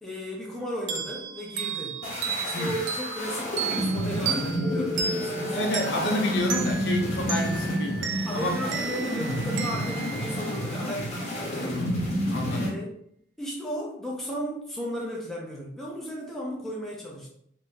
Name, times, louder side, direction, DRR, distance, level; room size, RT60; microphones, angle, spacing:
voice 1, 0.0-2.0 2.4-5.6 8.3-11.7 12.4-12.9 13.4-17.3, equal, ahead, -3 dB, 0.6 m, -35 dB
sound 1, 0.9-11.2, right 6 dB, 60° right, 0.3 m, -35 dB
sound 2, 2.0-12.7, equal, 35° left, 0.9 m, -30 dB
voice 2, 5.5-8.6 11.6-12.8, left 1 dB, 55° left, 2 dB, 0.6 m, -30 dB
2.7 x 2.6 x 3.6 m, 0.69 s
head